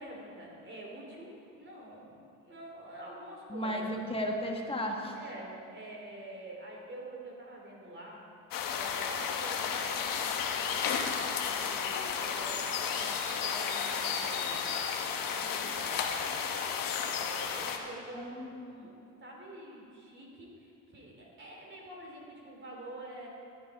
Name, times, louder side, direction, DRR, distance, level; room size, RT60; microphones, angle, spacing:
voice 1, 0.0-3.9 5.1-8.2 8.6-11.0 11.4-14.6 15.1-16.4 17.0-18.4 18.7-18.9 19.2-23.3, right 1 dB, 30° right, -2 dB, 3.1 m, -47 dB
voice 2, 3.5-5.2 18.1-18.9, equal, 15° left, 1 dB, 1.6 m, -35 dB
sound 1, 8.5-17.8, left 7 dB, 70° left, 1.2 m, -33 dB
13.5 x 9.5 x 4.8 m, 2.6 s
cardioid pair, 100°, 35 cm